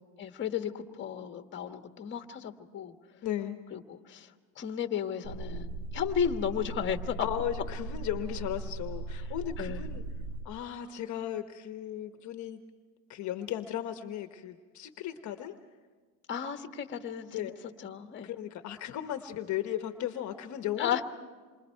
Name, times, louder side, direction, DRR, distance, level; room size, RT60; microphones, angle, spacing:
voice 1, 0.2-2.9 3.7-4.3 4.6-7.3 9.6-9.9 16.3-17.5 17.8-18.3 20.8-21.0, left 8 dB, 30° left, 6 dB, 1.5 m, -34 dB
voice 2, 3.2-3.6 7.2-10.0 10.4-12.6 13.1-15.5 17.3-17.5 18.2-21.0, left 11 dB, 45° left, 7 dB, 1.2 m, -36 dB
sound 1, 5.2-10.4, right 3 dB, 85° right, 1.5 m, -38 dB
28.0 x 23.5 x 4.6 m, 1.5 s
cardioid pair, 130°, 41 cm